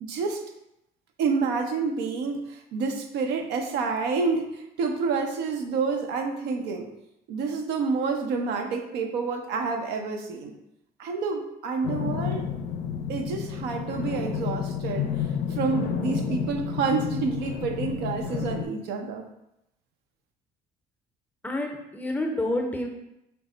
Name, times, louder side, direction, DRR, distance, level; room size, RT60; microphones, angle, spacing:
voice 1, 0.0-0.4 1.2-6.9 7.3-10.5 11.0-12.5 13.1-19.3, right 4 dB, 90° right, 4 dB, 0.6 m, -28 dB
sound 1, 11.8-18.6, left 7 dB, 80° left, 0.4 m, -30 dB
voice 2, 21.4-22.9, left 1 dB, 10° left, 2 dB, 0.6 m, -28 dB
4.5 x 2.1 x 3.8 m, 0.84 s
cardioid pair, 110°, 17 cm